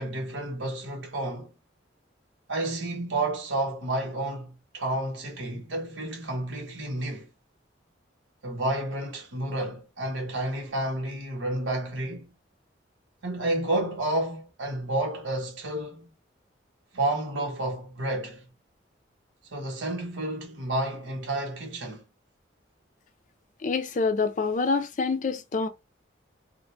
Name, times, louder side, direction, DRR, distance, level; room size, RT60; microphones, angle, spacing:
voice 1, 0.0-1.5 2.5-7.3 8.4-12.3 13.2-16.1 16.9-18.4 19.5-22.1, right 1 dB, 85° right, 1.0 m, -30 dB
voice 2, 23.6-25.7, left 4 dB, 40° left, 0.4 m, -26 dB
2.5 x 2.1 x 3.1 m
head